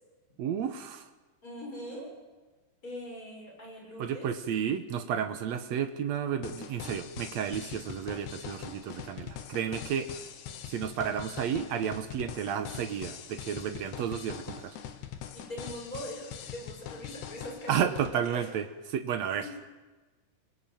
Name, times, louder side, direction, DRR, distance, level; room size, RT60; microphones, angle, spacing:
voice 1, 0.4-1.0 4.0-10.2 10.7-14.8 17.7-19.5, right 8 dB, 80° right, 9 dB, 1.6 m, -32 dB
voice 2, 1.4-2.1 2.8-4.3 15.3-18.5 19.3-19.5, equal, 20° left, -1 dB, 6.7 m, -42 dB
sound 1, 6.4-18.1, left 9 dB, 80° left, 3.5 m, -43 dB
26.0 x 21.0 x 9.2 m, 1.3 s
omnidirectional pair, 4.7 m